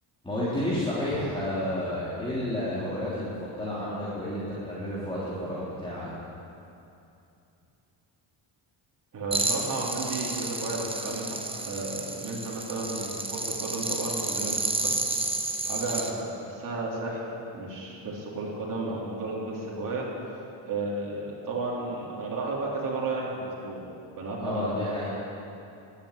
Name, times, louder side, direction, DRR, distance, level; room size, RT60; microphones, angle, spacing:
voice 1, 0.2-6.1 24.4-25.1, left 1 dB, 10° left, -10 dB, 3.3 m, -31 dB
voice 2, 9.1-15.0 15.6-17.3 17.5-20.1 20.7-25.1, right 2 dB, 40° right, -5 dB, 3.3 m, -33 dB
sound 1, 9.3-16.1, right 2 dB, 10° right, 1.0 m, -31 dB
12.0 x 9.2 x 8.4 m, 2.7 s
cardioid pair, 100°, 48 cm